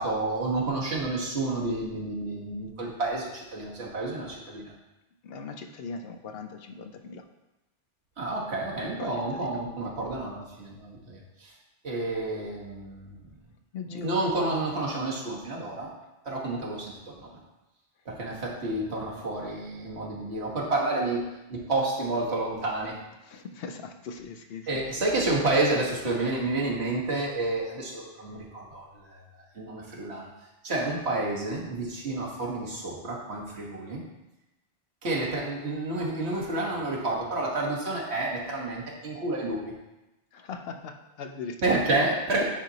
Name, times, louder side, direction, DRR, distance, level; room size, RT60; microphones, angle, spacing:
voice 1, 0.0-4.7 8.2-11.5 11.8-13.4 13.9-15.9 16.2-17.3 18.0-21.2 21.5-23.0 24.7-30.3 30.6-34.0 35.0-39.6 41.6-42.4, right 2 dB, 85° right, -4 dB, 1.6 m, -30 dB
voice 2, 5.2-7.2 9.0-9.6 13.7-14.1 23.2-24.8 40.3-41.9, left 5 dB, 70° left, 6 dB, 0.8 m, -40 dB
9.5 x 4.1 x 2.8 m, 1.0 s
omnidirectional pair, 1.1 m